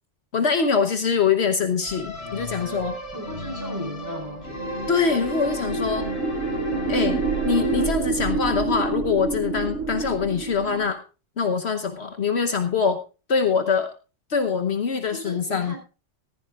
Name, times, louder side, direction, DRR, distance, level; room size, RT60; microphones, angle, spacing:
voice 1, 0.3-2.9 4.9-6.1 6.9-11.0 11.4-13.0 13.3-13.9 14.3-15.7, left 5 dB, 60° left, 7 dB, 1.2 m, -23 dB
sound 1, 1.8-7.9, left 1 dB, 45° left, 4.7 m, -32 dB
voice 2, 3.1-4.7 15.1-15.8, left 1 dB, 15° right, 2 dB, 4.2 m, -36 dB
sound 2, 4.8-10.9, right 4 dB, 80° right, 1.2 m, -28 dB
15.0 x 15.0 x 2.4 m, 0.31 s
omnidirectional pair, 1.2 m